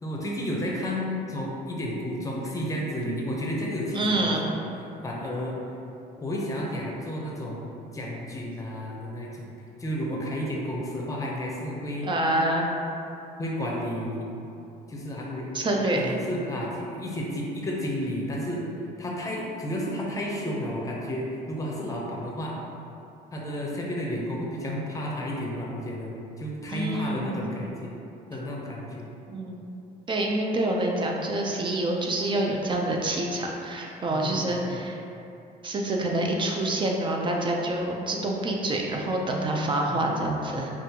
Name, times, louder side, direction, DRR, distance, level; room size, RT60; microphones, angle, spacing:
voice 1, 0.0-4.6 5.0-5.6 6.2-9.5 9.8-12.1 13.4-14.3 14.9-15.5 15.9-18.6 19.0-22.6 23.3-27.9 28.3-29.1 34.1-34.8 39.6-40.1, equal, 20° left, -3 dB, 0.7 m, -32 dB
voice 2, 3.9-4.4 12.0-12.7 15.5-16.1 26.7-27.4 29.3-29.6 30.1-35.0 35.6-40.7, right 1 dB, 30° right, 0 dB, 0.5 m, -27 dB
5.3 x 2.5 x 2.9 m, 2.8 s
cardioid pair, 110°, 17 cm